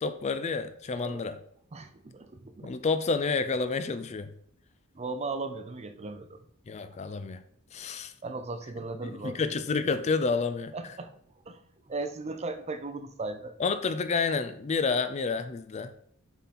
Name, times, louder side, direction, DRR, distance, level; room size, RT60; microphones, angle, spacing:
voice 1, 0.0-1.4 2.6-4.3 6.7-7.4 7.7-8.1 9.0-10.7 13.6-15.9, left 4 dB, 30° left, 11 dB, 0.4 m, -29 dB
voice 2, 0.9-1.2 1.7-2.8 5.0-6.4 8.2-9.4 10.7-11.2 11.5-13.5, right 3 dB, 30° right, 9 dB, 0.5 m, -37 dB
7.1 x 3.9 x 4.2 m, 0.69 s
head